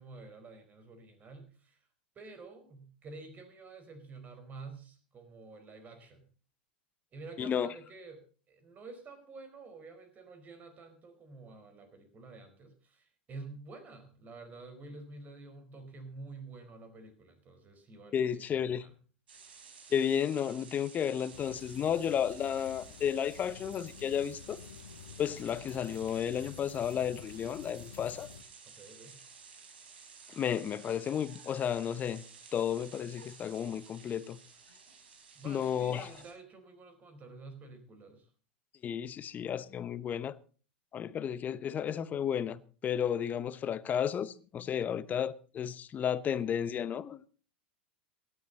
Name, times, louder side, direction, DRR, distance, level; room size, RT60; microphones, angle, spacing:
voice 1, 0.0-1.9 2.1-6.2 7.1-18.9 28.7-29.2 35.3-38.3, right 3 dB, 30° right, 4.6 m, -49 dB
voice 2, 7.4-7.7 18.1-18.9 19.9-24.6 25.2-28.3 30.3-32.2 32.5-34.4 35.4-36.1 38.8-40.3 40.9-47.3, left 8 dB, 30° left, 0.9 m, -33 dB
sound 1, 19.3-36.3, right 5 dB, 75° right, 4.3 m, -53 dB
sound 2, 21.3-28.4, left 8 dB, 75° left, 1.4 m, -51 dB
17.5 x 12.5 x 4.1 m
hypercardioid pair, 90°, 5 cm